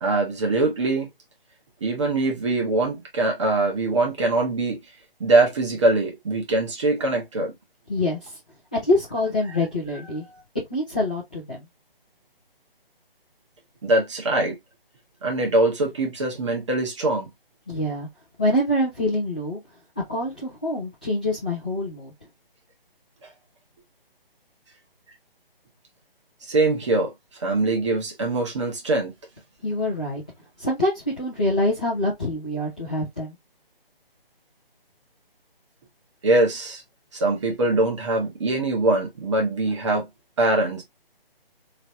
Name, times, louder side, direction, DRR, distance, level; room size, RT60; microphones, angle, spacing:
voice 1, 0.0-1.1 1.8-4.8 5.2-7.5 13.8-14.6 15.2-17.3 23.2-23.3 26.4-27.1 27.4-29.1 36.2-36.8 37.1-40.1 40.4-40.8, right 2 dB, 30° right, 1.3 m, -22 dB
voice 2, 7.9-8.2 8.7-10.2 10.7-11.6 17.7-18.1 18.4-19.6 20.1-22.1 29.6-30.2 30.6-33.3, left 1 dB, 10° left, 0.5 m, -25 dB
3.8 x 3.2 x 2.7 m
figure-of-eight pair, 160°, 30 cm